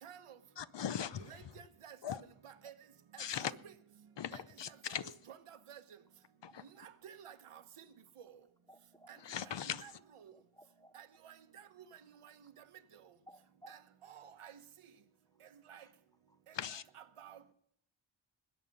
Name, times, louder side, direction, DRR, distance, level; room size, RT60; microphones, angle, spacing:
voice 1, 0.0-0.4 1.2-2.0 2.4-2.7 3.1-3.7 4.3-5.0 5.3-5.8 6.8-7.8 9.1-9.5 9.8-9.9 10.2-10.3 10.9-11.8 12.2-12.3 13.7-14.6 15.7-15.8 16.7-17.4, right 9 dB, 85° right, 1.1 m, -53 dB
voice 2, 0.6-1.3 2.0-2.2 3.2-3.5 4.2-5.1 6.5-6.6 9.2-9.8 16.5-16.8, left 9 dB, 55° left, 0.7 m, -39 dB
voice 3, 8.7-9.1 10.3-10.9 13.3-13.7, equal, 10° left, 0.5 m, -59 dB
20.5 x 9.1 x 5.3 m
wide cardioid pair, 125°, 50 cm